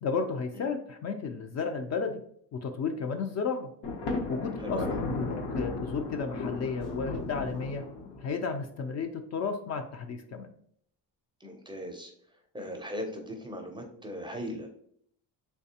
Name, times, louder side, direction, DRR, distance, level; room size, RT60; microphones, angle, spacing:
voice 1, 0.0-2.2 2.5-3.7 4.3-7.8 8.2-10.5, left 5 dB, 45° left, 6 dB, 0.4 m, -33 dB
Thunder, 3.8-8.4, left 3 dB, 75° left, 1.0 m, -35 dB
voice 2, 4.6-5.0 11.4-12.1 12.5-14.7, equal, 10° right, 3 dB, 0.4 m, -38 dB
3.4 x 3.2 x 2.7 m, 0.65 s
cardioid pair, 120°, 39 cm